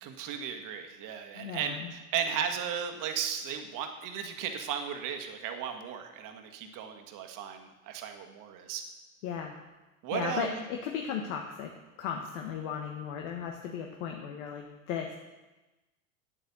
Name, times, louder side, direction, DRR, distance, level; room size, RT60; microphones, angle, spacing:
voice 1, 0.0-8.8 10.0-10.6, right 8 dB, 50° right, 5 dB, 1.6 m, -35 dB
voice 2, 1.3-1.9 9.2-9.5 10.1-11.7 12.0-15.1, left 7 dB, 65° left, 2 dB, 1.4 m, -36 dB
9.1 x 8.7 x 6.9 m, 1.1 s
hypercardioid pair, 85°, 40 cm